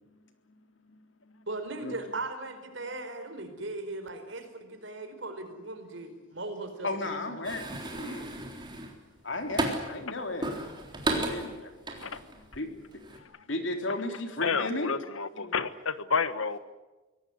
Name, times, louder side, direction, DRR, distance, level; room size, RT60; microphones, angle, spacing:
voice 1, 1.5-7.3, right 2 dB, 65° right, 7 dB, 4.7 m, -38 dB
voice 2, 6.8-8.3 9.2-10.5 11.1-12.0 12.3-13.2 13.5-15.0 15.3-15.5, left 2 dB, 65° left, 5 dB, 3.8 m, -35 dB
sound 1, 7.4-10.0 10.4-12.6 12.9-13.2, right 1 dB, 20° right, 3.7 m, -34 dB
voice 3, 14.4-16.6, left 5 dB, 85° left, 13 dB, 1.3 m, -30 dB
24.0 x 18.0 x 9.6 m, 1.2 s
head